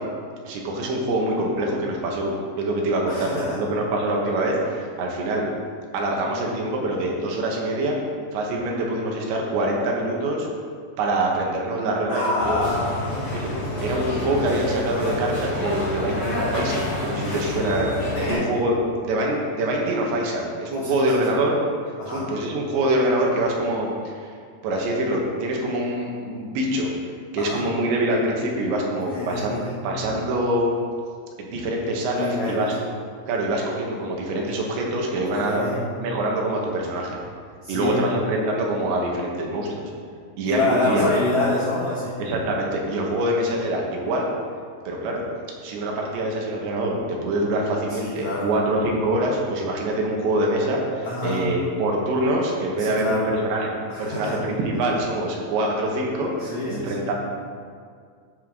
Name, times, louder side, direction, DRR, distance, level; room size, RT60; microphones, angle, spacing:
voice 1, 0.5-5.5 5.9-8.0 8.3-10.5 11.0-12.7 13.3-13.5 13.8-17.9 18.3-18.8 19.0-21.5 22.1-24.3 24.6-26.9 27.3-30.8 31.4-32.7 33.3-37.2 37.7-39.8 40.4-41.1 42.2-44.3 44.9-45.2 45.6-57.1, right 1 dB, 80° right, -1 dB, 3.5 m, -25 dB
voice 2, 3.1-3.6 12.1-13.2 18.1-18.4 20.7-21.2 22.0-22.2 27.4-27.6 28.9-29.8 32.1-32.7 35.2-35.9 37.6-38.0 40.4-42.1 47.9-48.5 51.0-51.4 52.8-53.3 53.9-54.4 56.4-57.1, left 2 dB, 80° left, -5 dB, 1.6 m, -27 dB
sound 1, 12.4-18.3, left 1 dB, 40° left, 2.9 m, -28 dB
12.5 x 7.9 x 3.8 m, 2.1 s
omnidirectional pair, 5.3 m